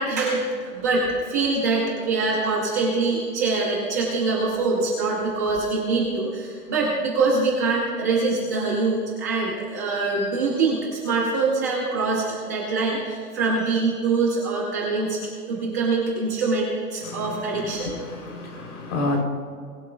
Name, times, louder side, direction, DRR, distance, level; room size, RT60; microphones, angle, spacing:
voice 1, 0.0-15.2 15.5-17.9, right 3 dB, 10° right, -4 dB, 0.7 m, -24 dB
voice 2, 17.0-19.2, left 2 dB, 70° left, 2 dB, 3.5 m, -30 dB
20.0 x 11.5 x 2.3 m, 2.2 s
hypercardioid pair, 180°, 45 cm